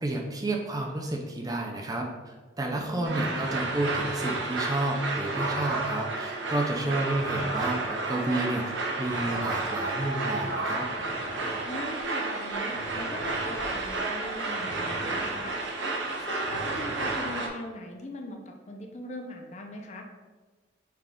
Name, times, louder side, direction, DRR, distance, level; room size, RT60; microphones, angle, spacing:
voice 1, 0.0-8.6 9.0-10.9, right 2 dB, 20° right, 1 dB, 0.4 m, -30 dB
voice 2, 2.7-3.5 6.8-7.0 11.6-15.5 16.1-20.1, left 1 dB, 40° left, 3 dB, 0.5 m, -40 dB
sound 1, 3.0-17.5, right 2 dB, 85° right, 0.7 m, -31 dB
5.7 x 2.4 x 3.5 m, 1.3 s
head